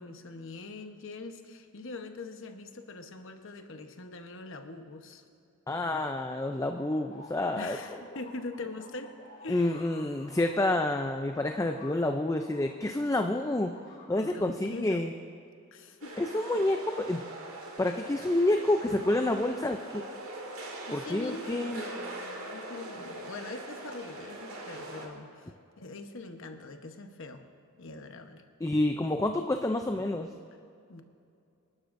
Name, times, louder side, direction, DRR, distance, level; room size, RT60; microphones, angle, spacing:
voice 1, 0.0-5.2 7.5-9.1 9.4-9.9 14.1-15.2 15.7-16.2 16.5-16.6 20.8-27.5 27.8-28.4 30.9-31.0, left 3 dB, 60° left, 6 dB, 1.0 m, -43 dB
voice 2, 5.7-7.8 9.5-13.7 14.1-15.1 16.2-17.2 17.8-20.0 20.9-21.8 28.6-30.3, left 1 dB, 15° left, 5 dB, 0.4 m, -28 dB
sound 1, 6.0-13.1 13.3-14.3, left 2 dB, 40° left, 2.5 m, -50 dB
sound 2, 16.0-25.1, right 1 dB, 70° right, 2.4 m, -42 dB
27.5 x 12.0 x 2.6 m, 2.5 s
head